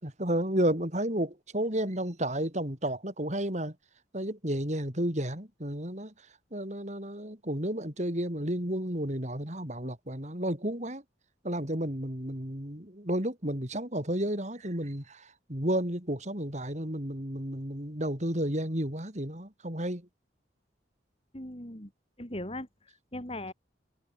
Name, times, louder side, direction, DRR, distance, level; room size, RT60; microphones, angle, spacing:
voice 1, 0.0-3.8 4.1-11.0 11.4-20.1, right 1 dB, 40° right, 4.8 m, -32 dB
voice 2, 21.3-21.9 22.2-23.5, left 1 dB, 30° left, 4.6 m, -39 dB
head